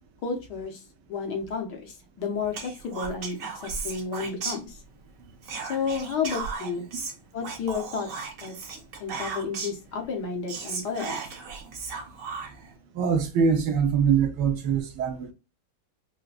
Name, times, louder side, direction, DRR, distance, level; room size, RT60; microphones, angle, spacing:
voice 1, 0.2-0.8 1.1-3.4 3.8-4.8 5.7-6.9 7.3-8.1 8.4-8.5 9.0-11.2, left 5 dB, 65° left, 1.5 m, -31 dB
Whispering, 2.5-5.1 5.4-9.9 10.2-10.3 10.5-12.7, right 4 dB, 55° right, 1.1 m, -36 dB
voice 2, 12.9-15.3, right 6 dB, 75° right, 1.3 m, -23 dB
4.7 x 2.2 x 2.4 m
omnidirectional pair, 2.1 m